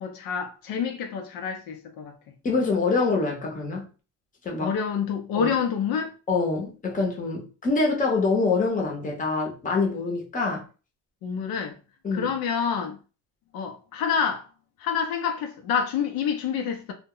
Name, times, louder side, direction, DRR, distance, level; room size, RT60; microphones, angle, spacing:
voice 1, 0.0-2.1 4.6-6.1 11.2-11.7 12.1-13.0 13.5-14.4 14.8-16.9, left 7 dB, 75° left, 0.6 m, -27 dB
voice 2, 2.4-3.8 4.4-4.8 5.3-5.5 6.3-10.6 12.0-12.3, left 3 dB, 20° left, 0.7 m, -25 dB
2.1 x 2.0 x 3.6 m
cardioid pair, 130°, 36 cm